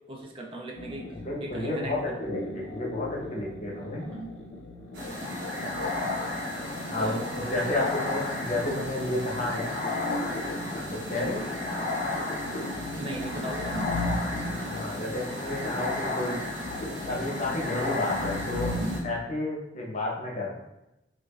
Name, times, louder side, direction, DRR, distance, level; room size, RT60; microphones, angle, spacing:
voice 1, 0.0-1.1 1.4-2.2 4.1-4.4 7.0-7.9 11.1-11.4 13.0-13.8 16.2-16.4, right 2 dB, 30° right, 0 dB, 0.4 m, -38 dB
sound 1, 0.8-19.2, left 1 dB, 80° left, 0.6 m, -38 dB
voice 2, 1.1-4.1 6.9-9.8 10.7-11.5 14.6-16.4 17.0-18.7 19.0-20.6, left 2 dB, 40° left, -3 dB, 0.9 m, -31 dB
sound 2, 4.9-19.0, left 2 dB, 85° right, 0.8 m, -33 dB
4.8 x 2.5 x 2.4 m, 0.92 s
head